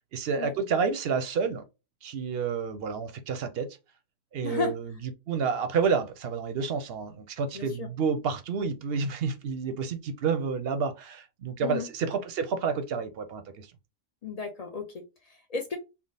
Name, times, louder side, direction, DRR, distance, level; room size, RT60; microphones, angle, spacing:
voice 1, 0.1-1.6 2.0-3.8 4.3-4.9 5.3-13.7, right 5 dB, 60° right, 0.7 m, -29 dB
voice 2, 4.4-4.7 7.5-7.9 11.6-11.9 14.2-15.8, left 5 dB, 70° left, 0.3 m, -34 dB
3.5 x 2.0 x 3.9 m
omnidirectional pair, 1.3 m